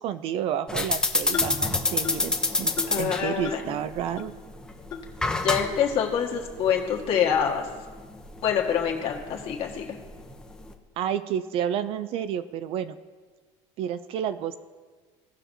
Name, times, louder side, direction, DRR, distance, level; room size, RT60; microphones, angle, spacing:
voice 1, 0.0-4.3 11.0-13.0 13.8-14.6, right 9 dB, 45° right, 13 dB, 0.4 m, -30 dB
sound 1, 0.7-10.7, left 2 dB, 5° left, 0.6 m, -29 dB
sound 2, 1.3-1.6 2.0-2.3 2.8-3.0 3.4-3.7 4.2-4.3 4.9-5.0 5.6-5.7 6.4-6.5 7.1-7.3, left 5 dB, 30° left, 1.0 m, -35 dB
voice 2, 2.9-3.8 5.4-7.7 8.4-10.0, left 8 dB, 45° left, 0 dB, 1.5 m, -26 dB
17.5 x 5.8 x 2.7 m, 1.4 s
cardioid pair, 155°, 13 cm